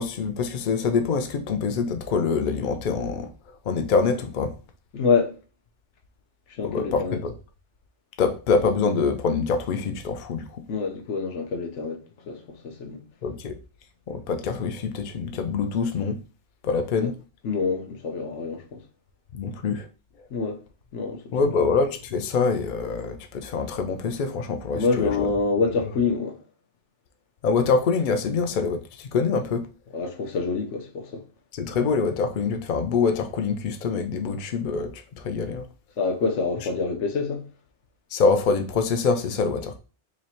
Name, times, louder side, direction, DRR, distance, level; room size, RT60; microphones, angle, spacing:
voice 1, 0.0-3.3 3.7-4.5 6.6-7.3 8.2-10.6 13.2-13.6 14.1-16.2 16.6-17.2 19.3-19.9 21.3-25.3 27.4-29.7 31.5-35.7 38.1-39.8, left 4 dB, 55° left, 0.6 m, -25 dB
voice 2, 4.9-5.4 6.5-7.2 10.7-12.0 12.3-13.0 17.0-17.1 17.4-18.8 20.3-20.6 20.9-21.2 24.7-26.4 29.9-31.2 36.0-37.4, left 4 dB, 85° left, 1.1 m, -26 dB
3.0 x 2.8 x 4.2 m
omnidirectional pair, 1.2 m